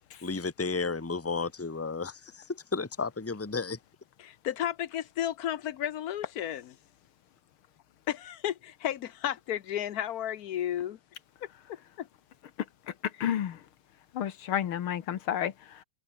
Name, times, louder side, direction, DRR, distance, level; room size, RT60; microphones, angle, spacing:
voice 1, 0.2-3.8, left 4 dB, 15° left, 0.5 m, -33 dB
voice 2, 4.2-6.8 8.1-11.0 11.4-12.1, left 11 dB, 60° left, 1.1 m, -33 dB
voice 3, 12.9-13.6 14.1-15.8, left 10 dB, 85° left, 2.1 m, -31 dB
omnidirectional pair, 2.3 m